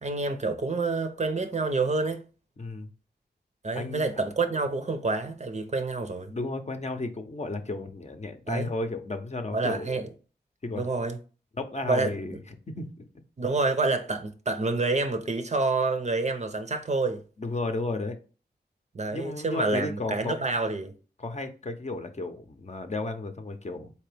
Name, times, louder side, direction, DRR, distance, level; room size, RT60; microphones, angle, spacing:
voice 1, 0.0-2.2 3.6-6.3 8.5-8.7 9.5-10.1 10.7-11.2 11.9-12.4 13.4-17.2 18.9-20.9, right 3 dB, 40° right, 0.6 m, -28 dB
voice 2, 2.6-2.9 3.8-4.1 6.3-10.0 10.6-10.9 11.6-12.4 12.7-12.9 17.4-18.2 19.1-20.4 21.2-23.9, left 2 dB, 40° left, 0.6 m, -33 dB
3.7 x 2.9 x 3.4 m
cardioid pair, 55°, 18 cm